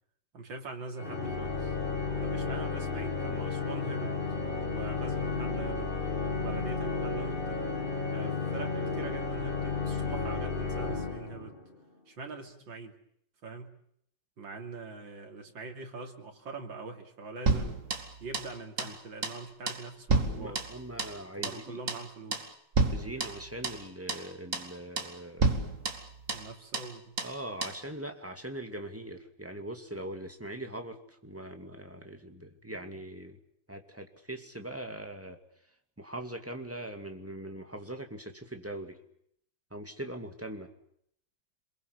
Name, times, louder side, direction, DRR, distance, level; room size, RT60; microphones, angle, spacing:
voice 1, 0.3-1.8 2.2-4.2 4.6-5.9 6.4-7.6 8.1-11.5 12.1-12.9 13.4-13.7 14.4-17.8 18.2-20.6 21.4-22.5 26.3-27.1, right 3 dB, 80° right, 4 dB, 3.7 m, -43 dB
Organ, 1.0-11.8, left 4 dB, 30° left, 2.2 m, -33 dB
sound 1, 17.5-18.5 18.8-19.0 19.2-19.4 19.7-21.2 21.4-21.6 21.9-22.1 22.3-22.5 22.7-23.8 24.1-24.3 24.5-24.7 25.0-25.1 25.4-26.5 26.7-26.9 27.2-27.4 27.6-27.8, right 3 dB, 40° right, 2.6 m, -30 dB
voice 2, 20.3-21.8 22.9-25.5 25.9-26.1 27.2-33.4 33.7-35.4 36.0-39.0 39.7-40.7, right 1 dB, 5° right, 6 dB, 2.4 m, -41 dB
27.5 x 22.5 x 8.2 m, 0.70 s
omnidirectional pair, 2.1 m